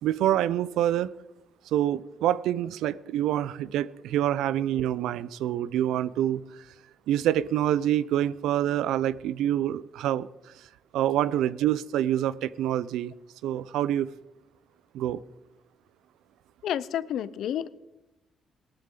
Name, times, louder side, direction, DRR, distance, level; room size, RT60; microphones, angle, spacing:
voice 1, 0.0-1.1 1.7-6.4 7.1-10.3 10.9-13.1 13.4-14.1 14.9-15.2, right 11 dB, 90° right, 19 dB, 0.4 m, -26 dB
voice 2, 16.6-17.7, left 10 dB, 75° left, 17 dB, 0.6 m, -30 dB
18.5 x 12.5 x 3.8 m, 0.93 s
cardioid pair, 90°, 0 cm